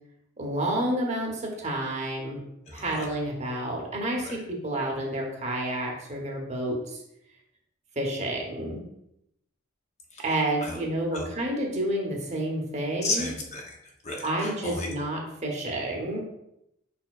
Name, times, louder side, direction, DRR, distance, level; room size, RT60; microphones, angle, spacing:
voice 1, 0.4-2.4 2.7-7.0 8.0-8.8 10.2-13.3 14.2-16.2, right 1 dB, 35° right, 0 dB, 0.9 m, -30 dB
voice 2, 2.7-3.1 4.2-4.4 10.1-10.2 10.6-10.8 11.1-11.3 13.0-13.7 14.0-14.9, left 2 dB, 35° left, 0 dB, 0.8 m, -33 dB
5.1 x 4.3 x 2.4 m, 0.81 s
head